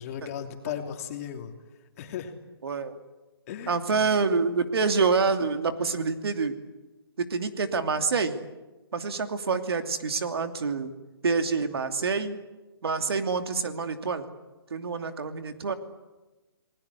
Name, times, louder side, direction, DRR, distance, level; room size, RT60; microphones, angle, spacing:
voice 1, 0.0-1.5 2.0-2.3 3.5-4.1, left 9 dB, 35° left, 4 dB, 2.9 m, -36 dB
voice 2, 2.6-3.0 3.7-6.6 7.2-8.4 8.9-10.9 11.2-12.4 12.8-14.2 14.7-15.7, right 4 dB, 70° right, 7 dB, 2.7 m, -27 dB
29.5 x 20.0 x 8.4 m, 1.1 s
hypercardioid pair, 150°, 13 cm